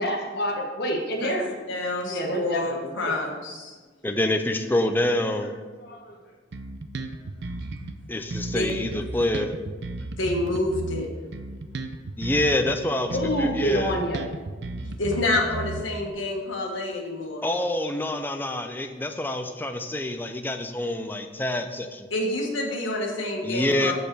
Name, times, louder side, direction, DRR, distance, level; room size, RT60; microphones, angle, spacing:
voice 1, 0.0-1.5 2.1-3.3 5.1-5.5 5.8-6.2 12.7-14.2, equal, 55° left, 0 dB, 1.2 m, -28 dB
voice 2, 1.7-3.8 8.5-8.7 10.1-11.1 14.8-17.4 22.1-23.9, left 2 dB, 85° left, 0 dB, 1.5 m, -28 dB
voice 3, 4.0-5.5 8.1-9.5 12.2-14.0 17.4-22.1 23.4-23.9, left 1 dB, 10° left, 6 dB, 0.5 m, -26 dB
Bass guitar, 6.5-8.0 8.3-12.8 13.1-16.1, right 2 dB, 60° right, 0.5 m, -34 dB
6.5 x 5.4 x 6.1 m, 1.4 s
head